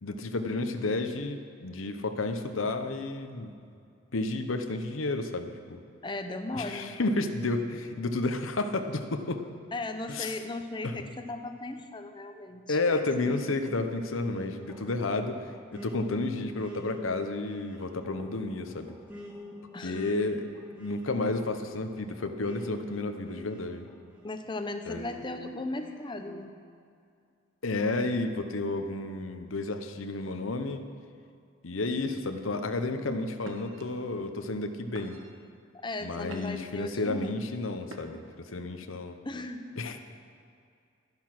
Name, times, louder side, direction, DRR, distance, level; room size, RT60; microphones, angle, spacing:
voice 1, 0.0-3.5 4.1-5.8 6.5-9.4 10.1-10.3 10.8-10.9 12.7-15.5 15.7-18.9 19.8-20.5 20.7-23.9 24.9-25.0 27.6-30.9 31.6-35.2 36.0-39.2 39.8-40.1, left 2 dB, 90° left, 7 dB, 0.9 m, -31 dB
voice 2, 6.0-7.0 9.7-13.0 19.7-20.1 24.2-26.6 35.8-37.3 37.9-38.1 39.2-39.6, left 2 dB, 25° left, 7 dB, 0.8 m, -37 dB
sound 1, 13.2-24.3 24.9-26.5, left 1 dB, 10° right, 2.5 m, -47 dB
sound 2, 33.4-33.8 34.5-34.6 34.9-35.4 35.9-36.8 37.8-38.4, right 1 dB, 90° right, 1.3 m, -46 dB
12.5 x 10.5 x 6.0 m, 2.4 s
head